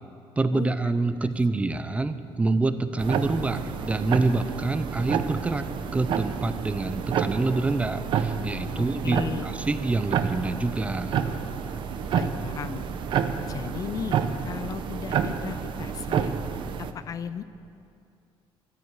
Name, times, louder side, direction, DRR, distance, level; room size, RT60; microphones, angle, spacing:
voice 1, 0.4-5.7 5.9-11.2, right 3 dB, 15° right, 11 dB, 0.5 m, -26 dB
sound 1, 0.9-16.2, right 3 dB, 40° right, 1.8 m, -47 dB
sound 2, 3.0-16.9, right 7 dB, 55° right, 0.8 m, -29 dB
voice 2, 8.7-9.4 12.1-12.8 13.5-16.3 16.8-17.4, left 7 dB, 40° left, 13 dB, 0.5 m, -36 dB
13.5 x 12.5 x 8.2 m, 2.5 s
cardioid pair, 155°, 10 cm